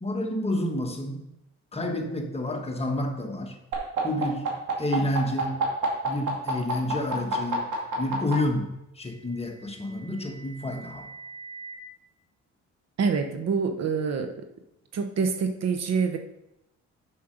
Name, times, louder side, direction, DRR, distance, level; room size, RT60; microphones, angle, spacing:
voice 1, 0.0-1.2 1.7-3.6 4.0-4.5 4.8-5.6 6.0-7.6 8.0-11.1, left 1 dB, 20° left, 2 dB, 1.4 m, -29 dB
sound 1, 3.7-8.3 9.5-11.7, right 5 dB, 75° right, 2.4 m, -32 dB
voice 2, 13.0-14.4 14.9-16.2, right 5 dB, 60° right, 6 dB, 1.0 m, -26 dB
6.8 x 5.7 x 5.3 m, 0.85 s
cardioid pair, 90°, 30 cm